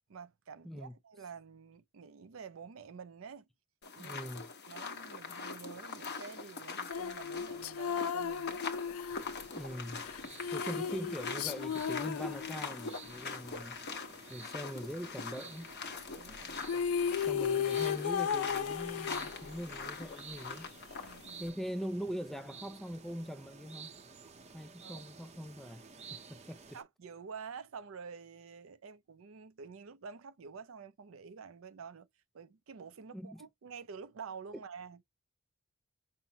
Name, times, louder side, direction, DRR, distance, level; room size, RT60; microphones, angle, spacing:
voice 1, 0.1-3.5 3.9-4.2 4.7-8.6 16.2-16.6 21.0-21.5 24.8-25.0 26.7-32.1 32.3-35.0, right 5 dB, 75° right, 0.5 m, -49 dB
sound 1, 3.8-21.5, left 4 dB, 55° left, 1.0 m, -43 dB
voice 2, 4.0-4.5 9.5-10.1 10.5-13.8 14.3-15.7 17.2-20.7 21.4-23.9 24.5-25.8 26.1-26.8 33.1-33.4, equal, ahead, 0.3 m, -42 dB
sound 2, 6.9-13.1 16.3-16.4 16.6-19.8, left 7 dB, 85° left, 0.4 m, -35 dB
sound 3, 9.0-26.8, right 5 dB, 30° right, 0.6 m, -53 dB
5.5 x 2.0 x 2.8 m
head